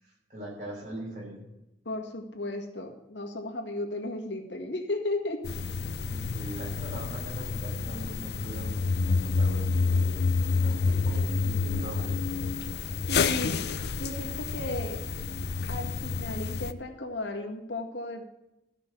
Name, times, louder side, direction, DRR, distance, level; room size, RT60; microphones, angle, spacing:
voice 1, 0.0-1.5 6.0-10.3 10.6-12.4, right 1 dB, 40° right, -3 dB, 5.7 m, -42 dB
voice 2, 1.9-5.5 13.1-13.6 13.9-15.0 15.7-18.2, left 2 dB, 80° left, 2 dB, 1.9 m, -35 dB
sound 1, 5.4-16.7, left 4 dB, 60° left, 0.5 m, -29 dB
14.0 x 5.9 x 8.2 m, 0.92 s
head